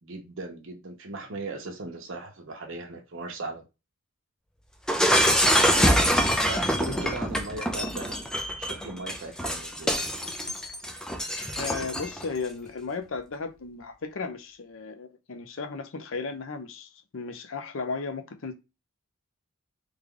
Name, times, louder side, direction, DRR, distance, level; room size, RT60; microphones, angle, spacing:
voice 1, 0.0-3.6 5.8-8.2 8.6-9.9, right 3 dB, 65° right, 0.8 m, -38 dB
Shatter, 4.9-12.2, equal, 5° left, 0.4 m, -25 dB
voice 2, 6.6-7.1 11.5-18.5, left 4 dB, 65° left, 0.6 m, -35 dB
3.3 x 2.3 x 3.7 m
head